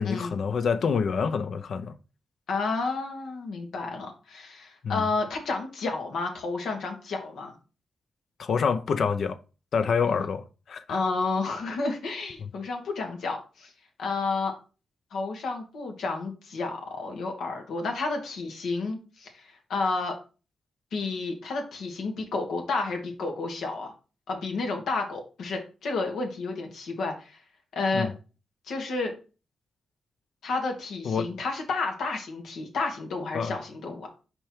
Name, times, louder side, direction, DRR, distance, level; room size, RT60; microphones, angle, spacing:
voice 1, 0.0-2.0 4.8-5.0 8.4-9.4 9.7-11.0 12.4-12.5 27.9-28.1 31.0-31.3 33.3-33.5, left 6 dB, 65° left, 0.6 m, -27 dB
voice 2, 2.5-7.5 10.0-10.2 10.9-13.7 14.0-14.5 15.1-20.1 20.9-23.9 24.3-27.4 27.7-28.1 28.7-29.1 30.4-34.1, left 3 dB, 85° left, 1.7 m, -31 dB
5.4 x 4.5 x 4.5 m
cardioid pair, 105°, 0 cm